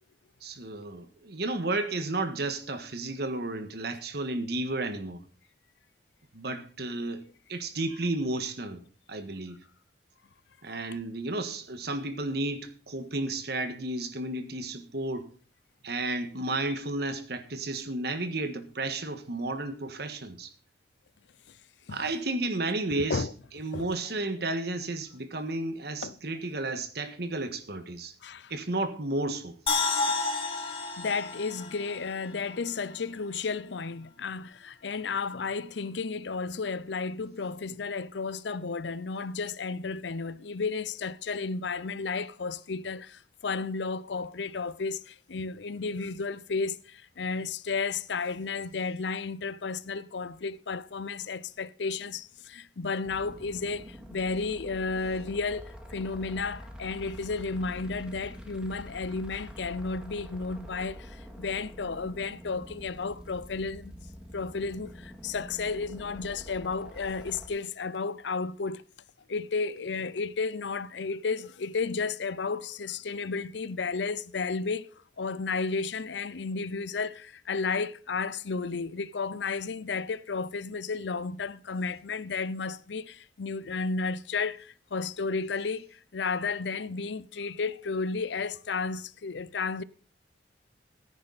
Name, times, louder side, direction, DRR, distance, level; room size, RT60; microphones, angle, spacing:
voice 1, 0.4-5.2 6.3-8.8 9.1-9.6 10.6-15.3 15.8-20.5 21.9-23.3 23.5-28.1 28.5-29.5 29.8-29.9, right 2 dB, 60° right, 1.6 m, -32 dB
voice 2, 28.2-28.5 31.0-63.9 64.3-68.8 69.3-74.9 75.2-89.8, left 4 dB, 75° left, 0.6 m, -33 dB
sound 1, 29.7-32.9 33.2-33.3, left 3 dB, 35° left, 2.8 m, -31 dB
sound 2, 53.0-67.5, equal, 5° right, 2.0 m, -46 dB
15.0 x 10.0 x 4.1 m
head